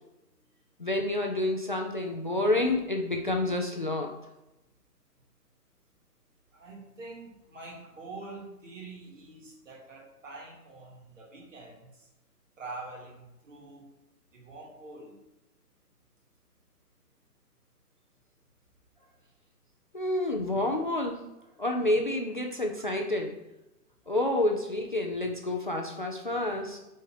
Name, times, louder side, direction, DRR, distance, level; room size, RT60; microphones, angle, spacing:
voice 1, 0.8-4.2 19.9-21.2 21.6-23.3 24.1-26.8, left 1 dB, 30° left, 2 dB, 0.5 m, -29 dB
voice 2, 6.5-12.1 12.6-13.9 14.3-15.2, right 3 dB, 50° right, -1 dB, 2.7 m, -45 dB
6.1 x 4.5 x 6.3 m, 0.98 s
hypercardioid pair, 160°, 48 cm